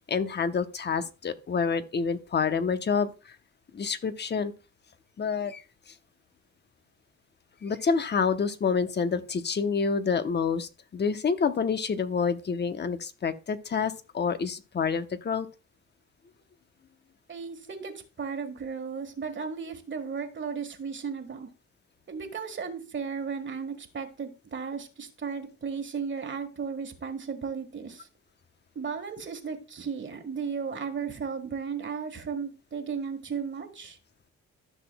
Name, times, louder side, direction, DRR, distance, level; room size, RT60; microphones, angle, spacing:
voice 1, 0.1-3.4 3.7-4.5 5.2-5.6 7.6-15.5, left 5 dB, 35° left, 0.9 m, -28 dB
voice 2, 17.3-21.5 22.1-28.1 28.7-34.0, right 6 dB, 40° right, 1.5 m, -35 dB
14.0 x 6.1 x 2.2 m
cardioid pair, 90°, 30 cm